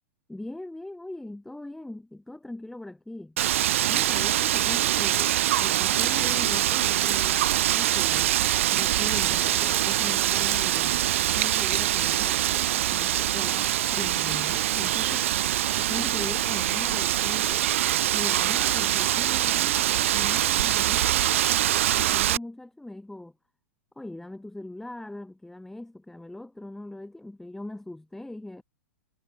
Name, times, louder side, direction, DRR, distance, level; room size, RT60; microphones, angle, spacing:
voice 1, 0.3-3.4 3.8-8.3 8.7-15.3 15.8-17.7 18.1-23.3 24.0-28.6, left 1 dB, 5° left, 4.0 m, -40 dB
Wind, 3.4-22.4, right 13 dB, 55° right, 0.9 m, -24 dB
figure-of-eight pair, 100°, 8 cm